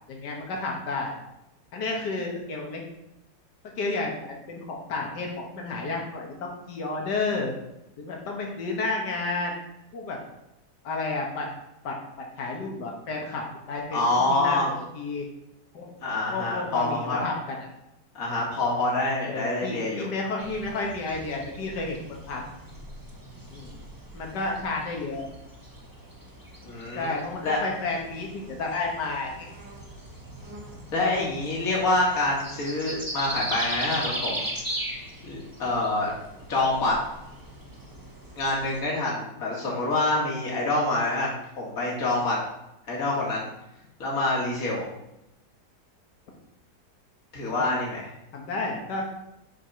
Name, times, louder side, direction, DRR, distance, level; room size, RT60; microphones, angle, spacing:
voice 1, 0.1-1.1 1.7-2.8 3.8-7.5 8.0-9.5 9.9-10.2 10.8-11.5 11.8-12.0 12.4-14.6 14.9-15.3 15.7-15.9 16.3-17.7 19.2-22.4 23.5-23.8 24.1-25.3 26.9-29.5 47.5-47.8 48.3-49.1, left 3 dB, 75° left, 0 dB, 1.9 m, -31 dB
voice 2, 13.9-14.7 16.0-17.3 18.1-20.1 26.6-27.1 27.4-27.6 30.9-34.5 35.2-36.1 36.5-37.0 38.4-42.4 42.9-43.5 44.0-44.9 47.3-48.1, left 2 dB, 55° left, -4 dB, 2.3 m, -26 dB
sound 1, 20.4-38.8, right 1 dB, 15° right, 1.1 m, -39 dB
7.6 x 4.8 x 5.6 m, 0.87 s
omnidirectional pair, 1.8 m